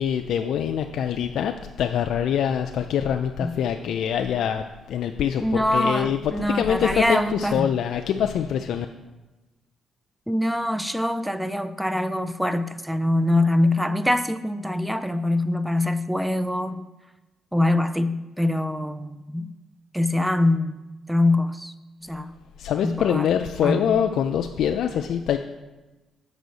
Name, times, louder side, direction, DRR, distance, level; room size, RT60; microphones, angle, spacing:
voice 1, 0.0-8.9 22.6-25.4, left 8 dB, 75° left, 6 dB, 0.3 m, -24 dB
voice 2, 5.4-7.7 10.3-16.8 17.5-19.5 19.9-20.8 21.1-21.7 22.0-22.4 22.8-23.3 23.6-24.0, left 1 dB, 5° right, 13 dB, 0.4 m, -24 dB
6.7 x 4.0 x 6.4 m, 1.1 s
cardioid pair, 90°, 0 cm